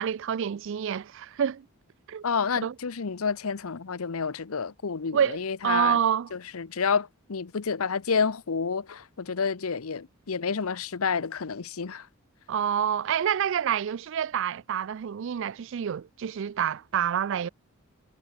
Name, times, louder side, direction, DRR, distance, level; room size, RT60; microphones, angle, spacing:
voice 1, 0.0-1.7 2.1-2.2 2.6-2.7 5.1-6.3 12.5-17.5, right 8 dB, 60° right, 0.3 m, -27 dB
voice 2, 2.2-6.0 6.3-12.1, left 5 dB, 80° left, 0.8 m, -29 dB
head